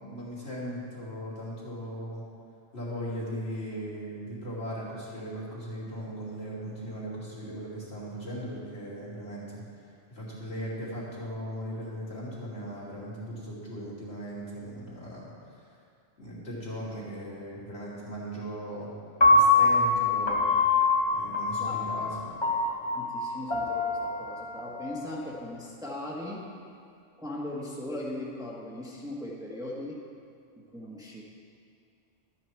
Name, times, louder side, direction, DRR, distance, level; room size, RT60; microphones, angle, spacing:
voice 1, 0.0-2.2 2.7-9.6 10.1-15.3 16.2-18.9 19.3-20.5 21.1-22.3, equal, 60° left, -8 dB, 3.0 m, -38 dB
Piano, 19.2-25.4, left 3 dB, 25° left, 1.0 m, -25 dB
voice 2, 21.6-21.9 22.9-26.4 27.2-30.0 30.7-31.2, left 1 dB, 5° right, -4 dB, 1.3 m, -39 dB
13.0 x 9.0 x 4.6 m, 2.4 s
omnidirectional pair, 1.2 m